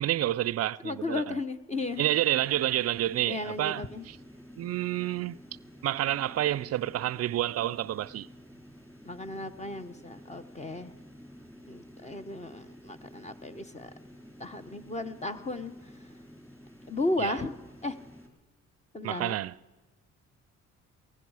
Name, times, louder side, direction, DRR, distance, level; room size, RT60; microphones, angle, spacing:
voice 1, 0.0-1.4 2.0-4.2 4.6-5.4 5.8-8.3 17.2-17.4 19.0-19.5, right 13 dB, 55° right, 0.5 m, -29 dB
voice 2, 0.8-2.0 3.3-4.1 9.0-10.9 11.7-13.9 14.4-15.7 16.9-17.5 17.8-18.0 18.9-19.4, left 2 dB, 20° left, 0.9 m, -34 dB
sound 1, 1.7-18.3, equal, 5° left, 3.2 m, -51 dB
18.0 x 15.5 x 4.8 m
cardioid pair, 90°, 30 cm